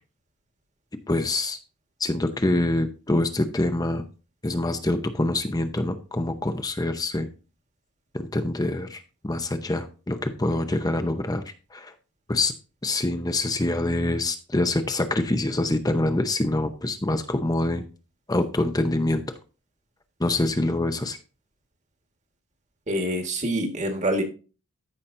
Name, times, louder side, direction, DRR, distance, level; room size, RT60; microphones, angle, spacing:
voice 1, 1.1-1.6 2.0-4.0 4.4-7.3 8.1-11.4 11.7-11.9 12.3-12.5 12.8-17.8 18.3-19.2 20.2-21.2, left 2 dB, 15° left, 8 dB, 0.7 m, -25 dB
voice 2, 22.9-24.2, right 1 dB, 30° right, 5 dB, 1.6 m, -26 dB
14.0 x 5.8 x 2.6 m, 0.34 s
head